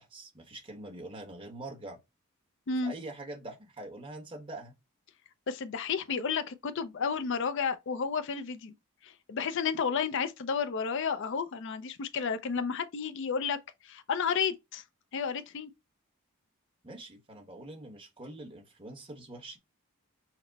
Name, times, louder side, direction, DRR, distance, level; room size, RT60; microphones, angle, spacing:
voice 1, 0.0-2.0 2.8-4.7 16.8-19.6, right 2 dB, 25° right, 1.1 m, -44 dB
voice 2, 5.5-8.7 9.0-13.6 13.8-14.8 15.1-15.7, left 6 dB, 60° left, 0.5 m, -32 dB
5.7 x 2.1 x 4.0 m
head